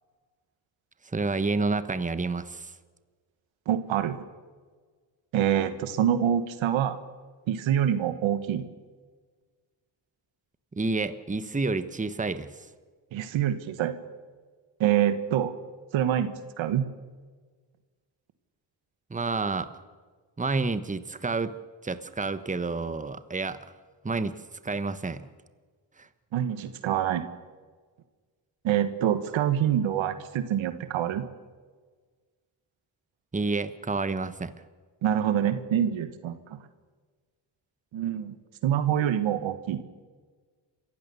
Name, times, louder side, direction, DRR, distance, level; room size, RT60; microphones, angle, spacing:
voice 1, 1.0-2.7 10.7-12.7 19.1-19.7 20.4-21.5 21.8-23.6 24.0-24.4 24.6-25.2 26.0-26.1 33.3-34.5, right 3 dB, 15° right, 12 dB, 1.2 m, -29 dB
voice 2, 3.7-4.2 5.3-7.0 7.5-8.6 13.1-13.9 14.8-15.5 15.9-16.9 26.3-27.2 28.6-31.3 35.0-36.6 37.9-38.3 38.6-39.8, right 10 dB, 90° right, 12 dB, 1.5 m, -26 dB
27.5 x 15.5 x 7.0 m, 1.5 s
cardioid pair, 75°, 46 cm